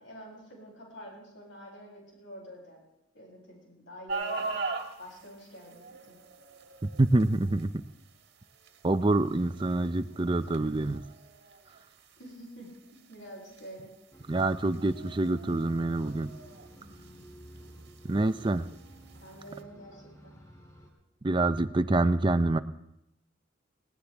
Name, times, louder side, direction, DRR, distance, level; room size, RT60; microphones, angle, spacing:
voice 1, 0.0-2.8 3.1-4.4 5.0-6.2 12.2-12.7 13.1-13.9 19.2-20.3, equal, 70° left, -2 dB, 7.8 m, -47 dB
sound 1, 4.1-19.6, right 3 dB, 55° right, 1.7 m, -43 dB
voice 2, 6.8-7.8 8.8-11.0 14.3-16.3 18.1-18.7 21.2-22.6, right 2 dB, 25° right, 10 dB, 0.5 m, -26 dB
sound 2, 14.1-20.9, equal, 15° left, 3.0 m, -52 dB
19.5 x 17.5 x 3.5 m, 0.84 s
head